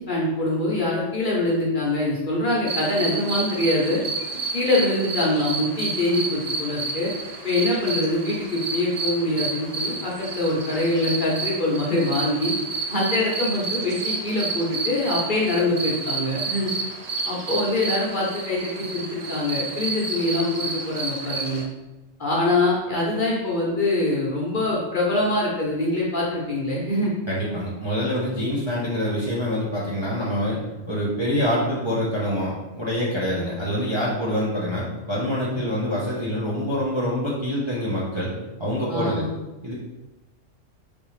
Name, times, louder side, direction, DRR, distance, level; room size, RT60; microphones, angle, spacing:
voice 1, 0.0-4.0 4.5-7.1 7.4-12.5 12.9-16.7 17.3-21.6 22.2-27.1 38.9-39.3, left 2 dB, 45° left, -5 dB, 0.9 m, -24 dB
sound 1, 2.7-21.6, right 3 dB, 55° right, 0.4 m, -30 dB
voice 2, 27.3-30.6 30.8-38.3 38.6-39.2 39.6-39.7, equal, 25° right, -7 dB, 0.7 m, -25 dB
4.1 x 3.5 x 3.1 m, 1.0 s
omnidirectional pair, 1.4 m